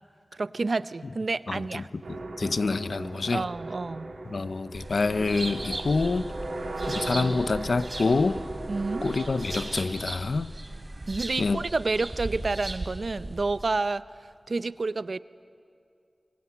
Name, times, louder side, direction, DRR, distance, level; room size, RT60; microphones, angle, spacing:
voice 1, 0.4-1.9 2.4-2.6 3.3-4.1 8.7-9.1 11.1-14.0 14.5-15.2, right 3 dB, 70° right, 15 dB, 0.6 m, -29 dB
voice 2, 1.5-1.8 2.1-3.4 4.3-6.3 6.8-8.4 9.0-10.5 11.4-11.6, left 3 dB, 80° left, 15 dB, 0.7 m, -27 dB
sound 1, 2.0-10.1, right 2 dB, 85° right, 2.6 m, -37 dB
sound 2, 4.7-13.7, right 2 dB, 45° right, 3.2 m, -37 dB
25.0 x 23.0 x 9.4 m, 2.5 s
cardioid pair, 40°, 0 cm